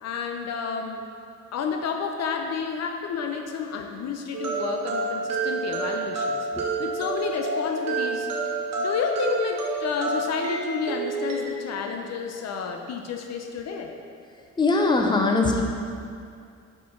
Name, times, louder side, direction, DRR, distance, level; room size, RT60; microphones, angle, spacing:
voice 1, 0.0-1.1 1.5-6.4 6.8-8.3 8.8-13.9, left 6 dB, 60° left, 4 dB, 0.6 m, -30 dB
sound 1, 4.3-11.3, right 3 dB, 60° right, 1.5 m, -29 dB
voice 2, 14.6-15.6, left 3 dB, 15° left, 2 dB, 0.6 m, -21 dB
4.5 x 4.5 x 5.7 m, 2.3 s
cardioid pair, 90°, 30 cm